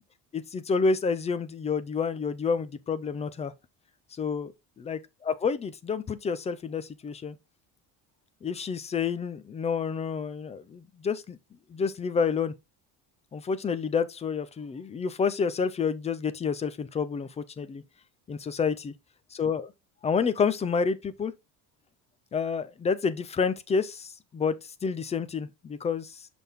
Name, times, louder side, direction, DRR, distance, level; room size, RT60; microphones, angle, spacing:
voice 1, 0.3-3.5 4.1-4.5 4.9-5.0 5.3-7.4 8.4-11.4 11.7-12.5 13.3-17.8 18.3-18.9 19.3-19.7 20.0-21.3 22.3-26.3, left 5 dB, 20° left, 0.4 m, -29 dB
6.0 x 5.5 x 3.5 m
cardioid pair, 165°, 37 cm